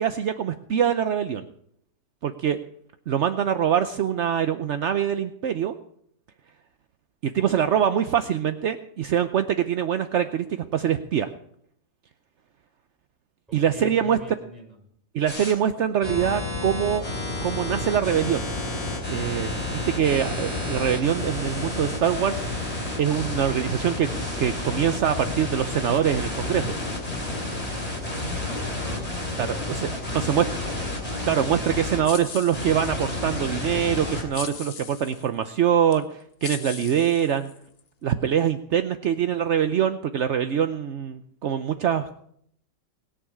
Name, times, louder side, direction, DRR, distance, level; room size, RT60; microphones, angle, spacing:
voice 1, 0.0-1.5 2.2-2.6 3.1-5.7 7.2-11.3 13.5-14.2 15.1-17.1 17.4-18.4 19.1-22.4 23.0-24.1 24.4-26.7 29.4-30.4 31.2-37.5 38.0-42.2, right 9 dB, 60° right, 9 dB, 0.7 m, -24 dB
voice 2, 13.5-14.8 28.0-30.7, right 1 dB, ahead, 2 dB, 6.4 m, -44 dB
sound 1, 15.3-15.5 16.0-32.0 32.5-34.2, left 2 dB, 20° left, 4.4 m, -30 dB
sound 2, 32.0-33.2 34.3-35.3 35.9-36.0 36.4-37.8, left 7 dB, 45° left, 0.8 m, -39 dB
20.0 x 7.2 x 8.7 m, 0.69 s
omnidirectional pair, 2.0 m